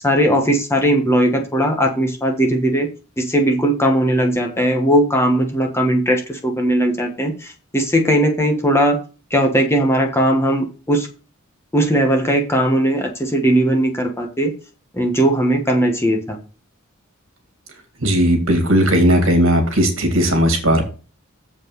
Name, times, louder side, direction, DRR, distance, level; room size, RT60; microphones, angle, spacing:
voice 1, 0.0-2.9 3.2-9.0 9.3-11.1 11.7-14.5 14.9-16.4, right 1 dB, 10° left, 3 dB, 1.3 m, -18 dB
voice 2, 18.0-20.8, equal, 65° right, 5 dB, 2.4 m, -16 dB
7.2 x 5.2 x 6.5 m, 0.35 s
head